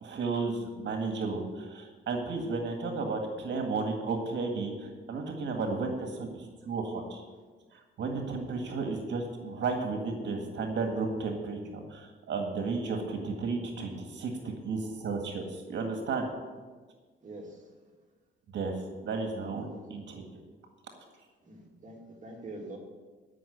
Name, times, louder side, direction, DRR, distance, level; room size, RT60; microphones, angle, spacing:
voice 1, 0.0-7.2 8.0-15.4 15.7-16.3 18.5-20.2, right 4 dB, 65° right, 3 dB, 1.9 m, -33 dB
voice 2, 17.2-17.6 19.7-19.8 21.4-22.8, right 2 dB, 40° right, 0 dB, 2.4 m, -44 dB
12.5 x 6.2 x 8.2 m, 1.4 s
cardioid pair, 90°, 20 cm